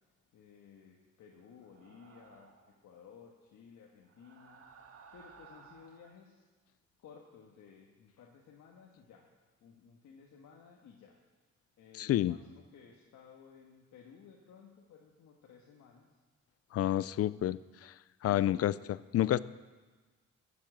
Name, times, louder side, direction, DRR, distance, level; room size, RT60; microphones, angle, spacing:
voice 1, 0.3-2.5 2.8-4.6 5.1-6.4 7.0-9.3 9.6-11.2 11.8-16.1 18.3-18.7, left 6 dB, 70° left, -1 dB, 1.5 m, -56 dB
sound 1, 1.6-2.8 4.0-6.2, right 5 dB, 50° right, 1.4 m, -57 dB
voice 2, 12.0-12.4 16.7-17.9 18.2-18.7 19.1-19.4, left 12 dB, 50° left, 19 dB, 0.5 m, -29 dB
15.0 x 7.6 x 7.5 m, 1.3 s
cardioid pair, 90°, 30 cm